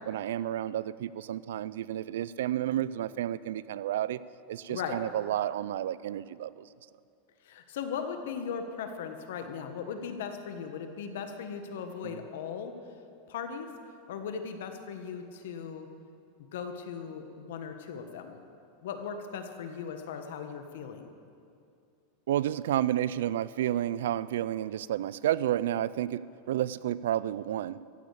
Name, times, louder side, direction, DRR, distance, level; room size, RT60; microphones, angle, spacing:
voice 1, 0.1-4.2 4.5-6.7 12.0-12.2 22.3-27.8, right 12 dB, 85° right, 18 dB, 0.4 m, -31 dB
voice 2, 7.4-12.7 13.3-13.7 14.1-15.9 16.5-18.4 18.8-21.1, left 6 dB, 80° left, 6 dB, 1.3 m, -38 dB
15.0 x 8.6 x 8.3 m, 2.5 s
supercardioid pair, 145°, 0 cm